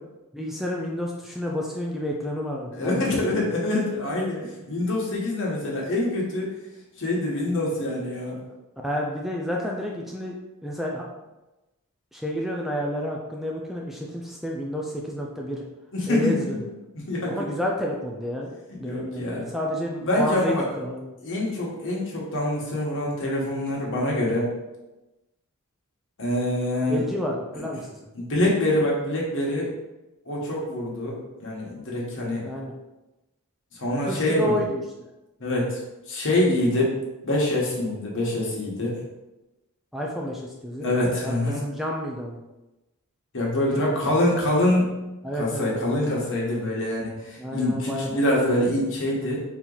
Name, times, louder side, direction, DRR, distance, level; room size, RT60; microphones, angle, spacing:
voice 1, 0.3-3.4 8.8-10.4 10.6-11.0 12.1-15.6 16.1-16.6 17.3-18.5 18.8-21.1 26.9-28.0 32.4-32.7 34.0-34.8 39.9-41.0 41.2-42.4 43.6-44.2 45.2-46.1 47.4-48.1, equal, ahead, -2 dB, 0.4 m, -30 dB
voice 2, 2.7-6.5 7.0-8.4 15.9-16.6 17.1-17.4 18.8-19.5 20.0-20.6 21.2-24.5 26.2-27.0 28.1-29.7 30.2-32.4 33.7-34.6 35.4-35.8 36.1-37.0 37.2-39.0 40.8-41.6 43.3-45.0 45.4-49.4, left 1 dB, 60° left, -3 dB, 1.3 m, -25 dB
4.2 x 3.0 x 3.9 m, 1.0 s
head